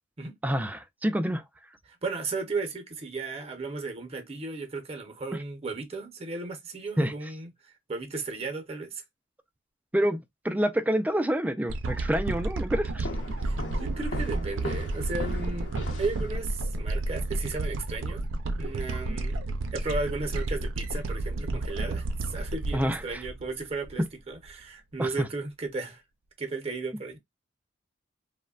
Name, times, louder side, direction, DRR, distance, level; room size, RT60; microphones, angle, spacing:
voice 1, 0.4-1.4 7.0-7.1 9.9-10.2 10.4-13.1 22.7-23.2 25.0-25.1, equal, 10° right, 0.3 m, -27 dB
voice 2, 1.9-7.5 7.9-9.0 13.4-15.7 16.0-18.3 18.6-26.0 26.4-27.2, right 3 dB, 35° right, 0.7 m, -35 dB
sound 1, 11.7-24.0 24.5-24.6, right 2 dB, 85° right, 0.5 m, -31 dB
sound 2, 13.0-16.7, equal, 70° left, 0.8 m, -38 dB
3.1 x 2.1 x 2.3 m
head